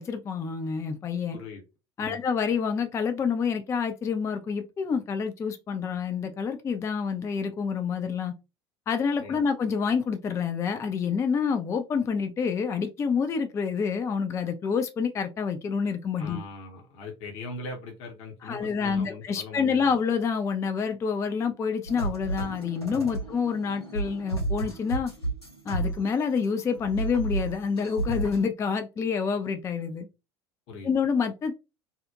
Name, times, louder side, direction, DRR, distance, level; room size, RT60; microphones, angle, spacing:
voice 1, 0.0-1.4 2.0-8.3 8.9-16.4 18.4-25.1 25.7-30.1 30.8-31.5, left 6 dB, 20° left, 0.3 m, -28 dB
voice 2, 1.3-1.6 2.0-2.2 9.2-9.4 16.2-19.9 23.1-23.2 30.7-30.9, left 3 dB, 50° left, 0.7 m, -40 dB
sound 1, 21.9-26.5 26.8-28.4, right 2 dB, 90° left, 1.2 m, -32 dB
2.8 x 2.0 x 2.3 m
figure-of-eight pair, 70°, 14 cm